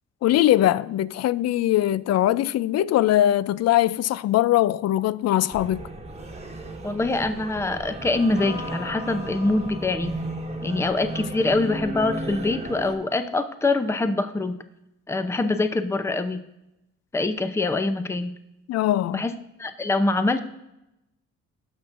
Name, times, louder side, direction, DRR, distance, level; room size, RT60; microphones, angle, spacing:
voice 1, 0.2-5.9 18.7-19.2, left 13 dB, 55° left, 0.4 m, -21 dB
sound 1, 5.5-12.9, right 1 dB, 20° right, 1.3 m, -34 dB
voice 2, 6.8-10.1 10.6-14.6 15.1-16.4 17.1-18.3 19.1-19.3 19.6-20.4, left 2 dB, 10° left, 0.6 m, -24 dB
Electric guitar, 8.4-11.9, left 5 dB, 85° left, 3.1 m, -43 dB
17.5 x 6.1 x 2.5 m
cardioid pair, 90°, 30 cm